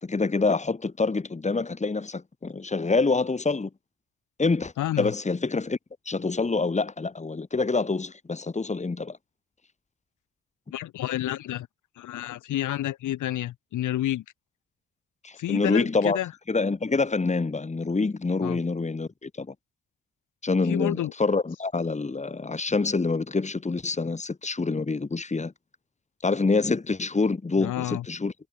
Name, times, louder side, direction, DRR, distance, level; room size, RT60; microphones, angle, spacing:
voice 1, 0.0-3.7 4.4-5.8 6.1-9.2 15.2-16.2 16.5-19.5 20.4-25.5 26.2-28.3, left 3 dB, 25° left, 4.0 m, -26 dB
voice 2, 4.8-5.1 10.7-11.7 12.0-14.2 15.4-16.3 18.4-18.6 20.7-21.1 27.6-28.0, left 13 dB, 80° left, 5.6 m, -29 dB
cardioid pair, 90°, 30 cm